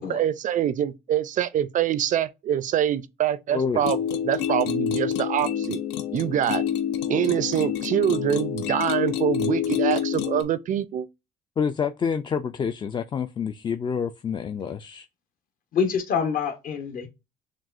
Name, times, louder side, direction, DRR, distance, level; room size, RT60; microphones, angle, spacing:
voice 1, 0.0-4.0 4.2-5.8 6.1-6.6 7.1-11.1, right 10 dB, 50° right, 0.4 m, -25 dB
voice 2, 3.5-3.8 11.6-15.1, left 6 dB, 30° left, 0.3 m, -27 dB
sound 1, 3.8-10.4, left 9 dB, 85° left, 0.6 m, -27 dB
voice 3, 15.7-17.1, left 6 dB, 55° left, 1.1 m, -26 dB
6.1 x 2.3 x 2.5 m
cardioid pair, 110°, 17 cm